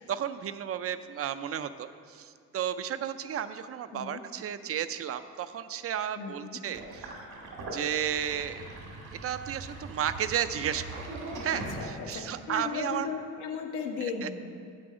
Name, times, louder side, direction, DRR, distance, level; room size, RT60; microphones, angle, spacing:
voice 1, 0.0-7.1 7.7-8.7 9.2-11.0 11.4-13.1 14.0-14.3, right 9 dB, 50° right, 11 dB, 0.4 m, -33 dB
voice 2, 3.9-4.2 6.2-6.6 11.5-14.5, left 5 dB, 80° left, 2 dB, 1.1 m, -36 dB
Sink (filling or washing), 6.7-12.3, right 2 dB, 80° right, 1.8 m, -41 dB
7.6 x 7.4 x 4.9 m, 2.2 s
cardioid pair, 90°, 30 cm